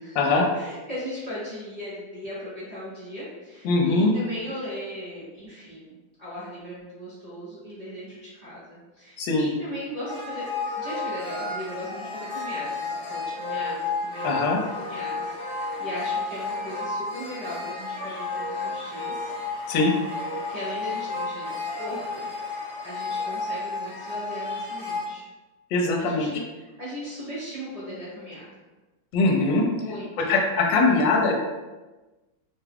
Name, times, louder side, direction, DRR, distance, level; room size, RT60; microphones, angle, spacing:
voice 1, 0.5-10.5 10.8-19.3 20.5-25.2 26.0-28.6 29.8-30.3, equal, 50° right, -10 dB, 0.4 m, -38 dB
voice 2, 3.6-4.2 9.2-9.5 14.2-14.6 19.7-19.9 25.7-26.3 29.1-29.7 30.2-31.3, left 3 dB, 75° left, 0 dB, 1.3 m, -21 dB
sound 1, 10.1-25.1, left 3 dB, 55° left, 0.9 m, -32 dB
3.5 x 2.3 x 3.4 m, 1.2 s
omnidirectional pair, 2.1 m